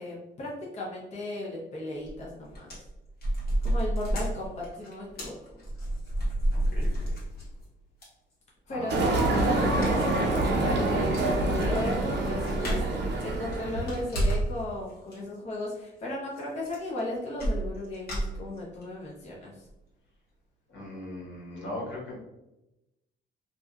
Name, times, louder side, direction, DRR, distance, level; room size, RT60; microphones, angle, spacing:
voice 1, 0.0-2.7 3.6-5.3 8.7-12.8 13.2-19.5, left 2 dB, 35° left, -5 dB, 0.7 m, -36 dB
sound 1, 2.1-2.2 2.5-7.6 8.0-8.1 9.8-10.1 10.5-10.6 10.9-11.0 11.1-13.0 13.4-14.6 14.9-15.2 16.4-16.5 16.6-17.0 17.4-18.8 19.3-19.4 19.7-19.8, right 1 dB, 50° left, 1.2 m, -30 dB
voice 2, 6.5-7.2 8.7-9.1 20.7-22.2, left 1 dB, 70° left, -4 dB, 1.1 m, -39 dB
sound 2, 8.9-14.1, right 2 dB, 60° right, 0.6 m, -26 dB
2.7 x 2.3 x 2.3 m, 0.94 s
cardioid pair, 90°, 20 cm